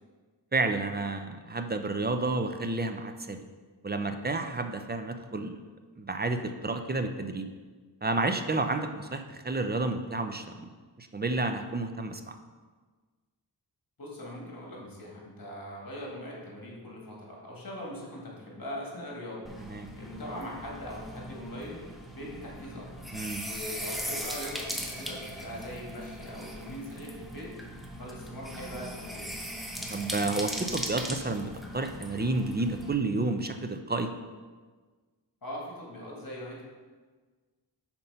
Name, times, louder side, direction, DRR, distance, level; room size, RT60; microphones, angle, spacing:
voice 1, 0.5-3.4 3.8-5.6 6.0-7.5 8.0-10.6 11.0-12.4 19.6-19.9 23.1-23.4 29.9-34.1, right 2 dB, 25° right, 7 dB, 0.5 m, -30 dB
voice 2, 14.0-19.5 20.0-21.8 22.1-22.9 23.4-27.5 28.0-29.3 35.4-36.6, equal, 50° left, -2 dB, 1.8 m, -41 dB
sound 1, 19.4-32.9, equal, ahead, 0.8 m, -39 dB
5.6 x 4.3 x 5.4 m, 1.4 s
wide cardioid pair, 65°, 43 cm